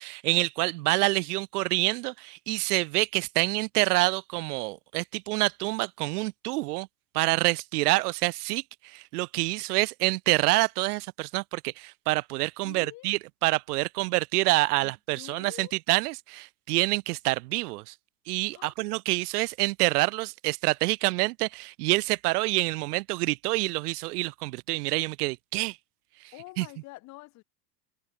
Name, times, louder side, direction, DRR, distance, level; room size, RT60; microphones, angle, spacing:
voice 1, 0.0-6.9 7.1-17.9 18.3-25.8 26.6-26.7, right 21 dB, 75° right, 0.6 m, -27 dB
voice 2, 12.6-13.1 14.8-15.7 18.5-18.7 26.3-27.4, left 20 dB, 35° left, 2.7 m, -46 dB
supercardioid pair, 160°, 47 cm